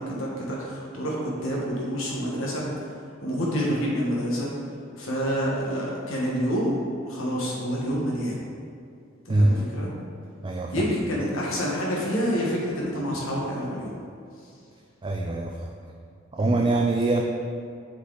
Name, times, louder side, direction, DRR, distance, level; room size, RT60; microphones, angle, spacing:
voice 1, 0.0-2.6 3.2-4.5 5.0-6.8 7.0-8.4 9.2-9.9 10.7-13.9 16.4-16.7, equal, 80° left, -4 dB, 1.2 m, -28 dB
voice 2, 9.3-9.7 10.4-10.7 15.0-15.7 16.3-17.2, right 2 dB, 25° right, 1 dB, 0.3 m, -23 dB
8.0 x 4.1 x 3.9 m, 2.4 s
head